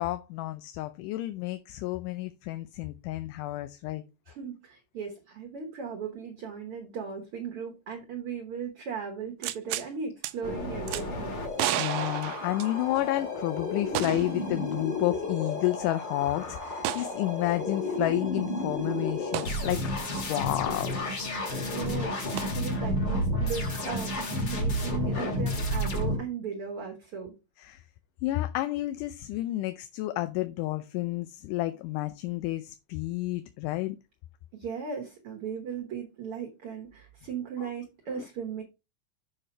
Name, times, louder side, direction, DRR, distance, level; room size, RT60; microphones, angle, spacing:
voice 1, 0.0-4.0 11.8-19.8 20.1-20.9 27.6-27.8 28.2-34.0 37.6-37.7 38.2-38.3, left 16 dB, 80° left, 2.0 m, -31 dB
voice 2, 4.3-11.4 21.3-27.3 34.5-38.6, right 7 dB, 60° right, 1.6 m, -37 dB
sound 1, 9.4-9.9 10.2-10.3 10.9-11.0 11.6-13.1 14.0-14.4 14.7-14.8 16.8-17.1 19.3-19.5 22.4-22.5, right 14 dB, 85° right, 2.2 m, -31 dB
sound 2, 10.4-26.2, left 1 dB, 40° left, 2.1 m, -31 dB
7.3 x 4.9 x 4.4 m
omnidirectional pair, 3.9 m